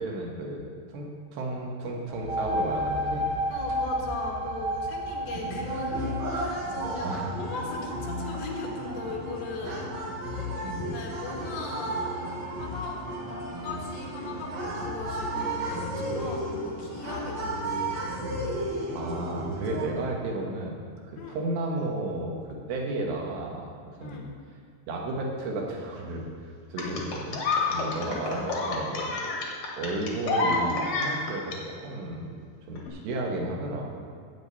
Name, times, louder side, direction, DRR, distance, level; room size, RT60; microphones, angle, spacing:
voice 1, 0.0-3.3 7.0-7.3 10.6-10.9 18.9-20.8 21.1-24.3 24.9-26.2 26.7-27.4 27.7-29.1 29.8-32.4 32.7-34.0, right 2 dB, 80° right, -1 dB, 3.6 m, -33 dB
sound 1, 2.1-9.5, equal, 10° right, 0.4 m, -33 dB
voice 2, 3.5-10.0 10.7-12.0 12.4-13.0 13.3-18.0 21.2-21.4 24.0-24.2 26.8-27.0 27.9-28.5, left 3 dB, 80° left, -1 dB, 3.7 m, -39 dB
sound 2, 5.3-19.9, right 1 dB, 65° right, 1.2 m, -33 dB
sound 3, 26.8-31.6 32.8-32.9, left 3 dB, 55° left, 1.9 m, -28 dB
14.0 x 8.6 x 4.1 m, 2.1 s
omnidirectional pair, 4.9 m